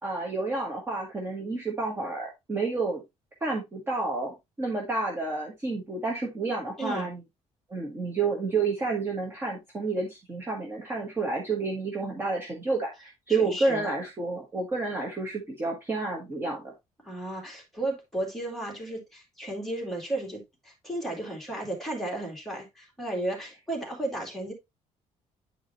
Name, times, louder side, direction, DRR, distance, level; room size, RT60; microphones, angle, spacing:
voice 1, 0.0-3.0 3.4-7.2 7.7-16.7, right 3 dB, 20° right, 1.4 m, -30 dB
voice 2, 6.8-7.1 13.3-13.9 17.0-24.5, right 1 dB, ahead, 2.4 m, -34 dB
9.7 x 4.8 x 2.7 m
cardioid pair, 175°, 13 cm